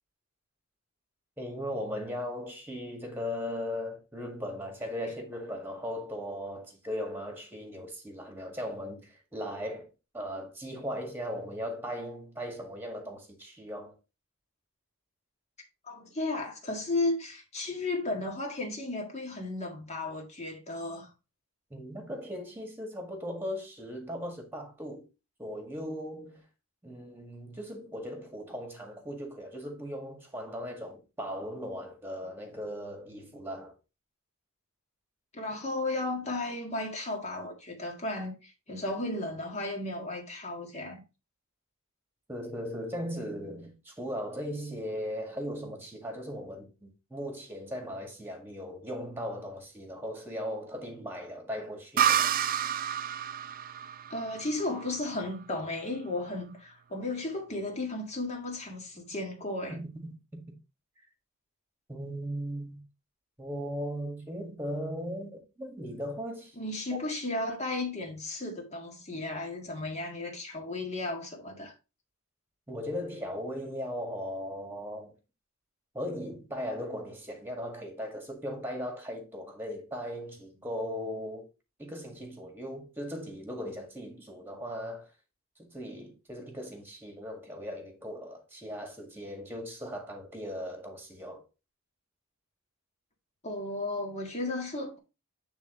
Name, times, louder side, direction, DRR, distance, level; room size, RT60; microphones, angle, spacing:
voice 1, 1.4-9.9 10.1-13.9 21.7-25.0 25.4-26.4 26.8-33.7 42.3-52.3 59.7-60.4 61.9-62.8 63.4-66.6 72.7-75.1 75.9-81.5 81.8-85.1 85.6-91.4, equal, 10° right, 1.9 m, -38 dB
voice 2, 15.8-21.1 35.3-41.0 54.1-59.8 66.6-71.7 93.4-95.0, left 2 dB, 30° left, 1.8 m, -34 dB
sound 1, 52.0-55.5, right 9 dB, 40° right, 0.3 m, -29 dB
9.1 x 3.7 x 3.8 m
head